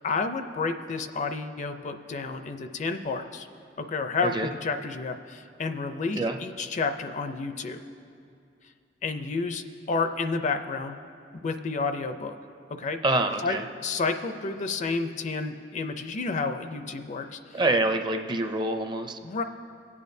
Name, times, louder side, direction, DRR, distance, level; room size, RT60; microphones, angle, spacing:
voice 1, 0.0-3.5 3.8-7.8 9.0-11.0 11.4-12.4 12.7-13.0 13.4-17.6 19.2-19.4, left 4 dB, 45° left, 8 dB, 0.5 m, -30 dB
voice 2, 13.0-13.6 17.5-19.2, right 2 dB, 25° right, 6 dB, 0.5 m, -26 dB
22.0 x 8.5 x 2.7 m, 2.4 s
head